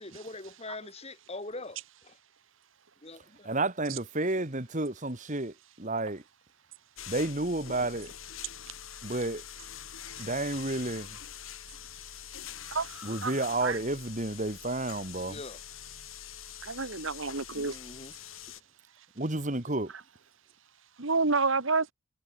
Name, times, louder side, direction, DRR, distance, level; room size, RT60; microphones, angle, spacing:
voice 1, 0.0-2.2 3.0-3.5 15.2-15.6 17.5-18.1, left 2 dB, 30° left, 3.2 m, -43 dB
voice 2, 3.4-6.2 7.1-8.1 9.0-9.4 10.2-11.1 13.0-15.4 19.2-19.9, right 2 dB, 35° right, 2.1 m, -31 dB
sound 1, 7.0-18.6, left 9 dB, 70° left, 6.2 m, -45 dB
voice 3, 12.7-13.3 13.6-13.8 16.6-17.8 21.0-21.9, right 4 dB, 65° right, 1.5 m, -29 dB
head